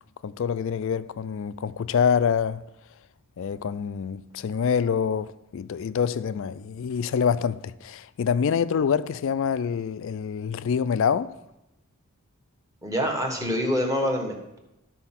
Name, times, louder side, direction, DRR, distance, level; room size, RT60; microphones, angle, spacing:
voice 1, 0.2-2.6 3.4-11.3, left 7 dB, 60° left, 0.3 m, -26 dB
voice 2, 12.8-14.6, equal, 15° right, 1.2 m, -26 dB
12.0 x 4.4 x 5.8 m
head